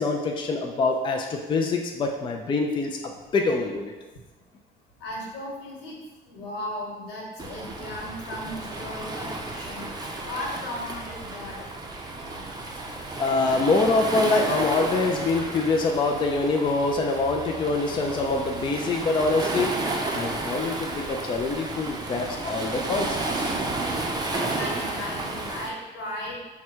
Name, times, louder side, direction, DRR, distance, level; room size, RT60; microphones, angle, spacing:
voice 1, 0.0-3.9 13.2-19.7 20.1-23.5, left 3 dB, 30° left, 2 dB, 0.4 m, -25 dB
voice 2, 5.0-6.0 6.2-9.9 10.3-11.6 24.3-26.4, left 1 dB, 85° left, -3 dB, 1.3 m, -36 dB
Waves surf, 7.4-25.7, right 2 dB, 25° right, 0.6 m, -32 dB
4.7 x 2.2 x 4.4 m, 1.2 s
cardioid pair, 110°, 17 cm